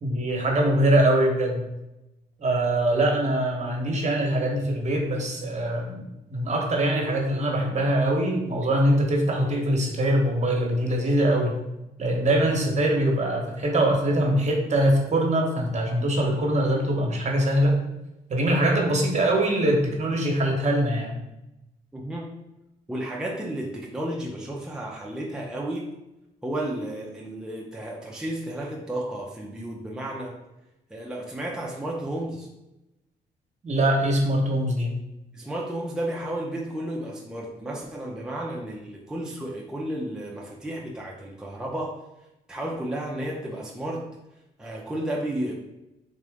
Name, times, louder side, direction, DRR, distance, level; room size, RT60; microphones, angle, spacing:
voice 1, 0.0-1.7 2.4-6.0 6.3-11.5 12.0-17.8 18.3-21.2 33.6-34.9, right 1 dB, 40° right, 0 dB, 1.1 m, -23 dB
voice 2, 21.9-22.3 22.9-25.9 26.4-30.4 30.9-32.5 35.3-42.0 42.5-44.1 44.6-45.5, right 1 dB, 5° right, -2 dB, 0.6 m, -32 dB
3.9 x 2.4 x 3.5 m, 0.91 s
supercardioid pair, 65°, 18 cm